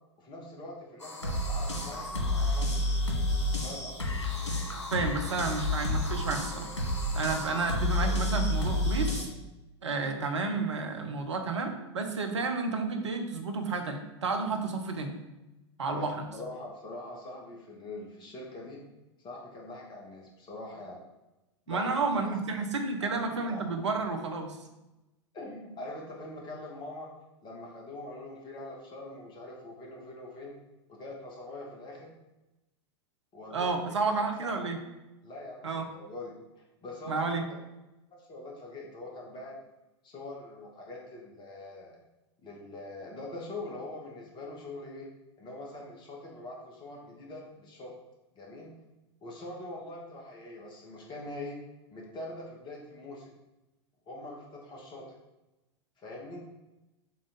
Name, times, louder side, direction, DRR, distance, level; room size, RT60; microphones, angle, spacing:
voice 1, 0.2-2.7 3.6-4.2 7.5-7.6 8.0-8.6 15.9-16.0 16.3-18.8 19.2-21.0 21.7-22.3 23.5-24.1 25.3-27.1 27.4-30.5 30.9-32.1 33.3-34.0 34.4-34.7 35.2-36.3 36.8-37.6 38.2-39.6 40.0-42.0 42.4-45.1 45.4-47.9 48.3-48.7 49.2-51.6 51.9-53.3 54.1-55.2 56.0-56.4, left 2 dB, 30° left, -2 dB, 2.2 m, -43 dB
sound 1, 1.0-9.2, left 1 dB, 85° left, 1.8 m, -30 dB
voice 2, 4.9-6.8 7.1-9.3 9.8-15.2 15.8-16.2 21.7-24.6 33.5-34.8 35.6-35.9 37.1-37.4, right 4 dB, 75° right, 5 dB, 1.2 m, -31 dB
7.5 x 3.9 x 5.4 m, 1.0 s
figure-of-eight pair, 95°, 15 cm